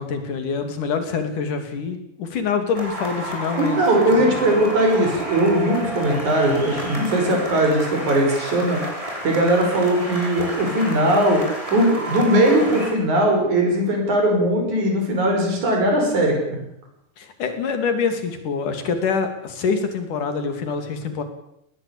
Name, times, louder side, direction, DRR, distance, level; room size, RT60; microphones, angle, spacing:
voice 1, 0.0-3.8 4.2-4.5 17.2-21.2, left 5 dB, 75° left, 7 dB, 4.2 m, -25 dB
sound 1, 2.7-12.9, equal, 10° right, 5.9 m, -31 dB
voice 2, 3.6-8.8 9.2-11.4 11.7-16.6, right 1 dB, 65° right, 1 dB, 7.3 m, -19 dB
20.0 x 19.0 x 8.7 m, 0.78 s
omnidirectional pair, 3.7 m